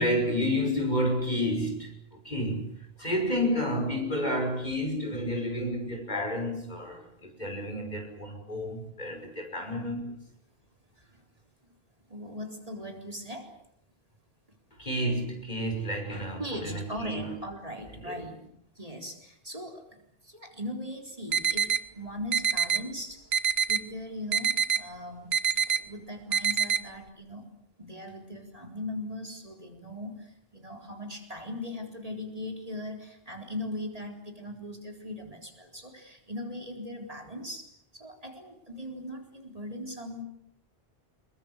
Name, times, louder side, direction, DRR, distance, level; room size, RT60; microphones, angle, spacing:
voice 1, 0.0-10.2 14.7-17.3 18.0-18.2, equal, 45° left, 3 dB, 6.2 m, -30 dB
voice 2, 12.1-13.5 16.4-18.5 18.8-23.2 23.7-27.5 27.8-37.7 37.9-40.2, left 1 dB, 35° right, 3 dB, 4.2 m, -39 dB
sound 1, 21.3-21.8 22.3-22.8 23.3-23.8 24.3-24.8 25.3-25.8 26.3-26.8, right 7 dB, 80° right, 1.5 m, -25 dB
26.5 x 22.5 x 8.2 m, 0.72 s
omnidirectional pair, 1.0 m